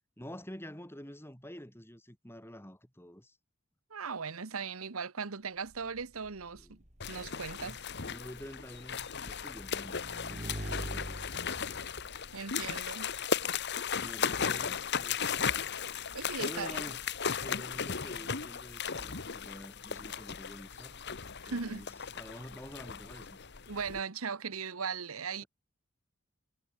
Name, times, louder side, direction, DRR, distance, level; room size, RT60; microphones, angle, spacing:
voice 1, 0.2-3.4 6.6-6.8 7.5-11.1 14.0-15.7 16.4-17.0 17.4-21.0 21.5-23.4 25.4-25.5, equal, 10° left, 5.7 m, -48 dB
voice 2, 3.9-6.8 7.1-7.8 12.3-13.1 16.1-16.8 21.4-21.8 23.7-25.4, right 5 dB, 80° right, 1.1 m, -38 dB
Motorcycle / Engine, 5.7-12.8, equal, 35° right, 5.5 m, -45 dB
sound 1, 7.0-24.0, left 6 dB, 50° left, 1.4 m, -36 dB
head